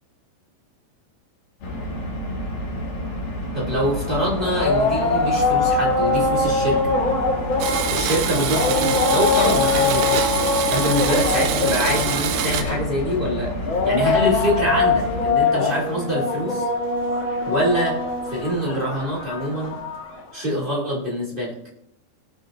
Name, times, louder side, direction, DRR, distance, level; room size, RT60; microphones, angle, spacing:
sound 1, 1.6-15.3, equal, 60° left, 3.6 m, -30 dB
voice 1, 3.5-6.9 7.9-10.2 10.7-13.5 13.8-16.7 17.4-18.0 18.3-19.8 20.3-21.5, equal, 20° right, -5 dB, 1.6 m, -24 dB
sound 2, 3.8-20.2, left 3 dB, 80° left, 1.1 m, -23 dB
Domestic sounds home sounds, 7.6-12.6, right 9 dB, 80° right, 3.1 m, -25 dB
18.0 x 9.1 x 2.6 m, 0.74 s
omnidirectional pair, 5.0 m